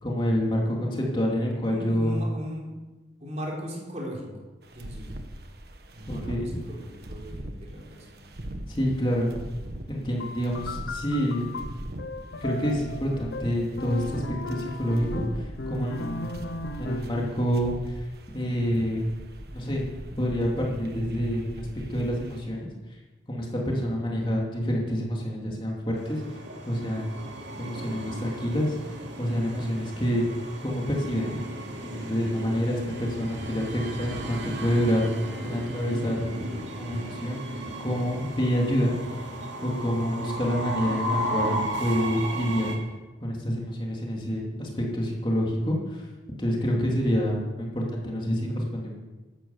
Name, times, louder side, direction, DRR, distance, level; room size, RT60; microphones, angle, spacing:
voice 1, 0.0-2.2 6.1-6.5 8.7-9.3 9.9-11.5 12.4-16.4 16.8-18.1 18.3-19.1 19.5-19.8 20.2-22.7 23.3-26.3 26.6-27.2 27.6-28.7 29.2-30.3 30.6-31.4 31.8-36.3 36.8-37.4 37.8-38.9 39.6-42.8 43.2-46.1 46.4-49.0, equal, 25° left, -2 dB, 2.6 m, -27 dB
voice 2, 1.7-2.7 3.2-4.3 4.7-5.2 5.9-8.3, equal, 35° right, -2 dB, 4.1 m, -38 dB
sound 1, 4.6-22.4, right 1 dB, 55° right, 1.5 m, -41 dB
sound 2, 10.2-17.3, left 2 dB, 80° left, 0.9 m, -37 dB
Train, 26.0-42.8, right 1 dB, 75° right, 2.9 m, -35 dB
12.5 x 11.5 x 8.2 m, 1.2 s
head